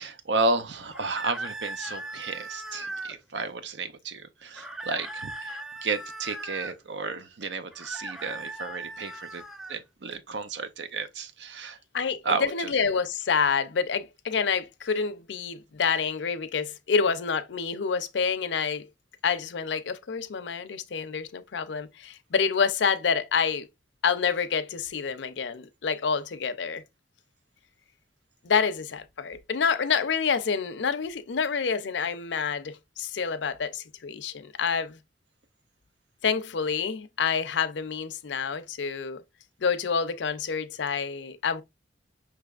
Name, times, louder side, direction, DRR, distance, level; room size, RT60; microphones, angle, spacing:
voice 1, 0.0-9.4 9.7-11.8 12.2-12.7, right 3 dB, 75° right, 0.6 m, -32 dB
sound 1, 0.9-3.2 4.6-6.8 7.7-9.8, right 2 dB, ahead, 0.3 m, -38 dB
voice 2, 11.9-18.9 19.2-23.7 24.0-26.8 28.4-35.0 36.2-39.2 39.6-41.6, left 6 dB, 80° left, 0.5 m, -28 dB
5.7 x 3.3 x 2.4 m
head